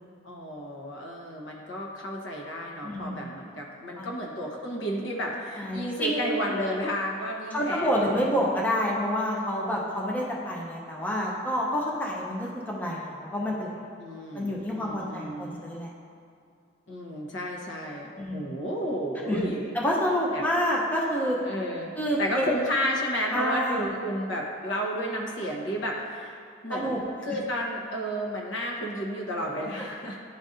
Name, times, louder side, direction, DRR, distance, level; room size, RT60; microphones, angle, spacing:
voice 1, 0.2-7.9 14.0-15.7 16.9-19.8 20.3-20.4 21.5-21.9 22.2-26.4 26.6-30.2, equal, 80° left, -1 dB, 1.0 m, -32 dB
voice 2, 2.8-3.4 4.0-4.1 5.6-6.4 7.5-13.7 14.3-15.9 18.2-18.5 19.3-19.5 19.7-21.4 22.0-22.6 23.3-23.9 26.7-27.0, equal, 10° left, -4 dB, 0.6 m, -28 dB
11.0 x 3.9 x 2.6 m, 2.5 s
head